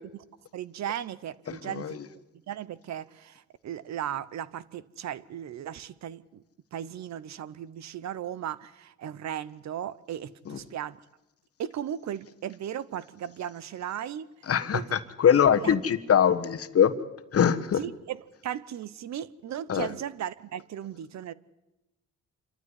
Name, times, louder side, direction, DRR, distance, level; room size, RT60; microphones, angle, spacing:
voice 1, 0.5-2.0 2.5-6.4 6.7-11.0 11.6-14.3 14.7-15.0 15.3-15.7 17.8-21.3, right 10 dB, 65° right, 0.9 m, -36 dB
voice 2, 1.5-2.0 10.5-10.6 14.5-16.9 17.3-17.8 19.7-19.9, left 8 dB, 50° left, 1.4 m, -23 dB
26.5 x 12.5 x 9.7 m
cardioid pair, 90°, 30 cm